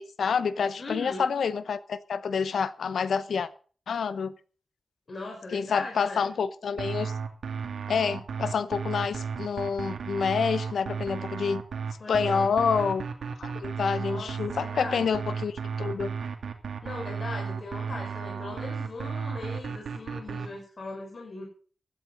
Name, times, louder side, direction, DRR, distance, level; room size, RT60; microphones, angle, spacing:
voice 1, 0.0-3.5 3.9-4.3 5.5-7.1 7.9-11.6 12.1-13.0 13.4-16.1, left 6 dB, 85° left, 15 dB, 1.0 m, -28 dB
voice 2, 0.8-1.3 5.1-6.3 12.0-12.6 14.0-15.2 16.8-21.5, left 2 dB, 45° left, 1 dB, 5.0 m, -39 dB
sound 1, 6.8-20.5, right 6 dB, 90° right, 2.7 m, -34 dB
16.0 x 12.5 x 4.0 m, 0.40 s
wide cardioid pair, 125°, 0 cm